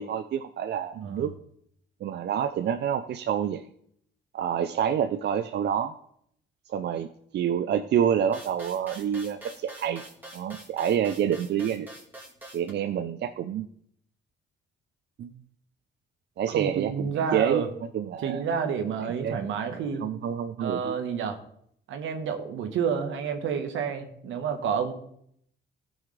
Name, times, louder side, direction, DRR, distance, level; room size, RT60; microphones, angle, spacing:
voice 1, 0.0-1.3 2.0-3.7 4.3-5.9 6.7-7.1 7.3-10.0 10.3-11.9 12.5-13.7 15.2-15.3 16.4-17.6 17.9-18.4 19.2-19.4 19.7-21.0, right 9 dB, 60° right, 9 dB, 0.5 m, -28 dB
voice 2, 0.9-1.3 16.5-17.7 18.2-20.0 20.6-21.4 21.9-24.9, right 6 dB, 80° right, 7 dB, 1.3 m, -29 dB
sound 1, 8.3-12.7, right 1 dB, 10° right, 2.8 m, -45 dB
15.0 x 6.3 x 3.3 m, 0.69 s
cardioid pair, 90°, 20 cm